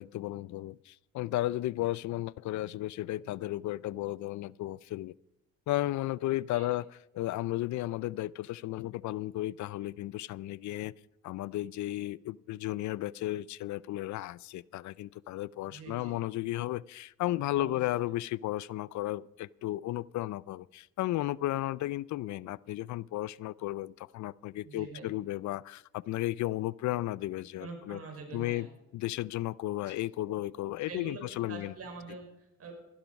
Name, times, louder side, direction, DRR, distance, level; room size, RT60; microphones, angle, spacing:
voice 1, 0.0-5.1 5.7-10.9 11.2-28.0 28.3-28.7 28.9-31.7, left 15 dB, 70° left, 0.4 m, -34 dB
voice 2, 15.7-16.1 17.5-17.9 24.6-25.1 27.6-28.7 30.8-32.7, right 4 dB, 50° right, 4.9 m, -45 dB
14.0 x 12.0 x 5.3 m
cardioid pair, 90°, 30 cm